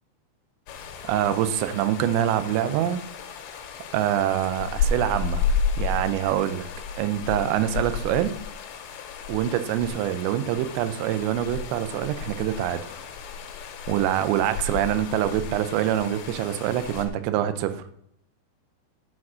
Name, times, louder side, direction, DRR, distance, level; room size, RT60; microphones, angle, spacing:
sound 1, 0.7-17.1, left 5 dB, 85° left, 3.3 m, -32 dB
voice 1, 1.0-3.0 3.9-5.5 5.8-6.7 7.0-8.3 9.3-12.8 13.9-17.8, right 11 dB, 85° right, 11 dB, 2.9 m, -25 dB
9.5 x 4.9 x 6.2 m, 0.72 s
omnidirectional pair, 5.0 m